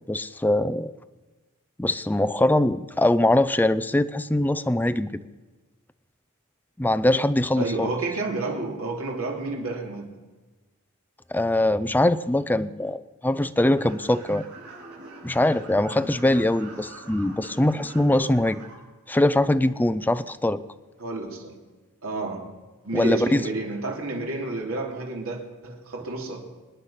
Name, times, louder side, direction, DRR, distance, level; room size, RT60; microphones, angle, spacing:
voice 1, 0.1-0.9 1.8-5.2 6.8-7.9 11.3-14.4 15.2-18.6 19.1-20.6 22.9-23.4, left 1 dB, 10° left, 12 dB, 0.5 m, -22 dB
voice 2, 7.6-10.1 21.0-21.6 22.0-22.4 22.8-26.4, right 2 dB, 75° right, 0 dB, 3.3 m, -30 dB
sound 1, 13.7-18.7, right 2 dB, 55° right, 5.6 m, -44 dB
25.0 x 9.8 x 5.9 m, 1.3 s
head